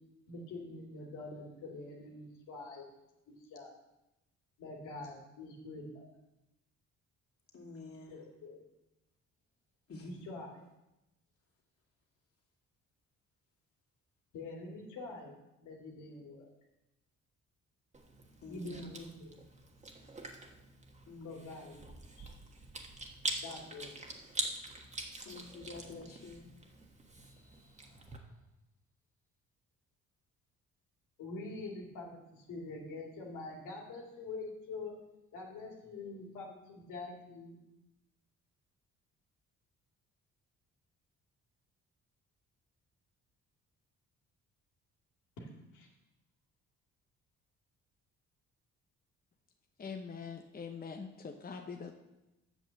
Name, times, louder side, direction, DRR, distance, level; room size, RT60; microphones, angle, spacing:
voice 1, 0.3-2.9 3.3-3.7 4.6-6.1 8.1-8.6 10.0-10.6 14.3-15.3 15.6-16.5 18.5-19.3 21.2-21.8 22.2-22.3 23.4-23.9 27.1-28.2 31.2-34.9 35.3-37.6 45.4-45.5 45.7-45.9, left 2 dB, 85° left, -1 dB, 2.4 m, -45 dB
voice 2, 7.5-8.2 9.9-10.1 18.4-18.8 21.1-21.5 25.3-26.5, left 3 dB, 50° left, 0 dB, 2.4 m, -48 dB
Chewing mastication, 17.9-28.2, right 2 dB, 25° right, 1.4 m, -44 dB
voice 3, 49.8-52.0, left 5 dB, 30° left, 3 dB, 0.9 m, -43 dB
8.2 x 6.0 x 7.3 m, 0.94 s
cardioid pair, 90°, 30 cm